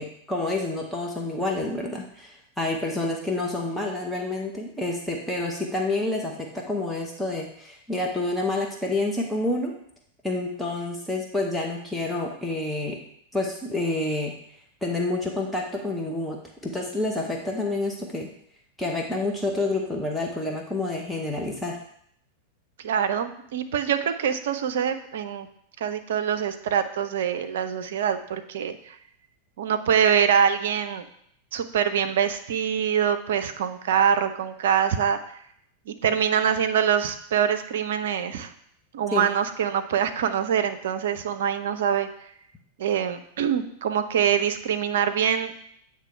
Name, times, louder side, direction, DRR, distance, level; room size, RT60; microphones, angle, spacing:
voice 1, 0.0-9.7 10.2-13.0 13.3-14.3 14.8-18.3 18.8-21.8 39.1-39.3, left 2 dB, 5° left, -1 dB, 0.8 m, -28 dB
voice 2, 22.8-25.5 25.8-28.9 29.6-31.0 31.5-35.2 35.9-38.5 38.9-42.1 42.8-45.5, right 8 dB, 60° right, 9 dB, 0.5 m, -24 dB
8.3 x 3.1 x 4.5 m, 0.69 s
figure-of-eight pair, 90°, 0 cm